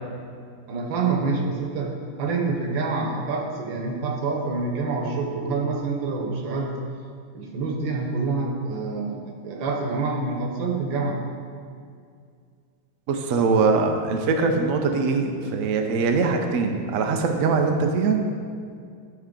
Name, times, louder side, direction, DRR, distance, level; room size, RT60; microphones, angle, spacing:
voice 1, 0.7-6.8 7.3-11.2, right 4 dB, 70° right, 2 dB, 1.6 m, -27 dB
voice 2, 13.1-18.2, right 4 dB, 85° right, 4 dB, 0.7 m, -22 dB
11.5 x 4.4 x 3.8 m, 2.2 s
omnidirectional pair, 2.3 m